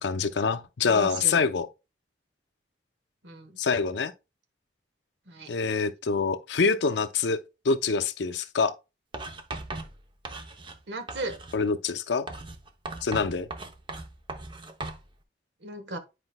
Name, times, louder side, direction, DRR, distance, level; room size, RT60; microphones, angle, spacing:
voice 1, 0.0-1.7 3.6-4.1 5.5-7.4 7.6-8.7 11.5-12.3 13.0-13.5, left 5 dB, 75° left, 0.6 m, -25 dB
voice 2, 0.8-1.4 3.2-3.6 5.3-5.5 10.9-11.4 15.6-16.0, right 2 dB, 70° right, 1.2 m, -36 dB
Writing, 9.1-10.8 11.1-11.6 12.3-15.0, right 2 dB, 25° right, 0.7 m, -38 dB
9.8 x 4.9 x 2.2 m
head